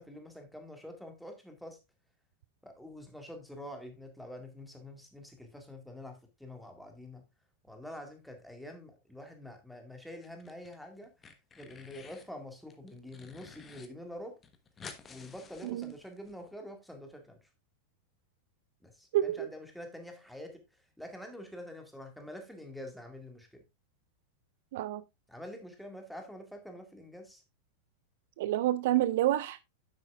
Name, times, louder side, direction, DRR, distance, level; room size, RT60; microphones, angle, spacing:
voice 1, 0.0-1.8 2.6-7.3 7.7-11.1 11.6-14.4 15.1-17.5 18.8-20.6 21.0-23.6 25.3-27.4, left 1 dB, ahead, 2.1 m, -46 dB
sound 1, 10.1-10.8 11.0-12.3 12.7-13.9 14.1-14.2 14.4-16.3, left 5 dB, 20° left, 1.2 m, -51 dB
voice 2, 19.1-19.5 24.7-25.0 28.4-29.6, right 14 dB, 55° right, 0.4 m, -28 dB
9.8 x 7.8 x 2.4 m
figure-of-eight pair, 90°, 0 cm